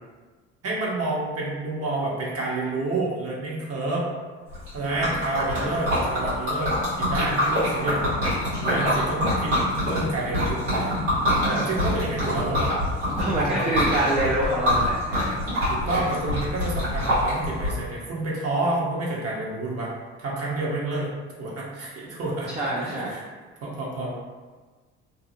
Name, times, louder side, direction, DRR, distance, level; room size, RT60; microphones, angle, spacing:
voice 1, 0.6-4.1 4.7-8.1 8.5-9.6 9.9-10.9 11.6-12.7 13.3-14.1 15.7-19.9 20.2-21.1 21.4-23.2 23.6-24.1, right 2 dB, 45° right, -4 dB, 1.0 m, -29 dB
Liquid, 4.5-17.7, left 1 dB, 90° right, 1.4 m, -25 dB
voice 2, 11.4-11.7 13.2-15.4 22.5-23.2, right 1 dB, 20° right, -5 dB, 0.5 m, -26 dB
2.7 x 2.4 x 2.7 m, 1.4 s
hypercardioid pair, 60°, 34 cm